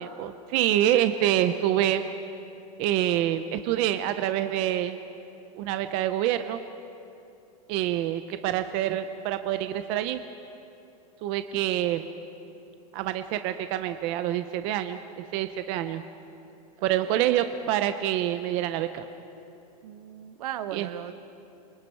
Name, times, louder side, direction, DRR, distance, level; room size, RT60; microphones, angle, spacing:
voice 1, 0.0-2.0 2.8-5.0 5.6-6.6 7.7-10.2 11.2-12.1 12.9-16.0 16.8-19.0 20.7-20.9, right 12 dB, 30° right, 10 dB, 0.5 m, -26 dB
voice 2, 19.8-21.2, right 11 dB, 65° right, 11 dB, 1.2 m, -37 dB
28.5 x 25.0 x 4.5 m, 2.7 s
supercardioid pair, 175°, 20 cm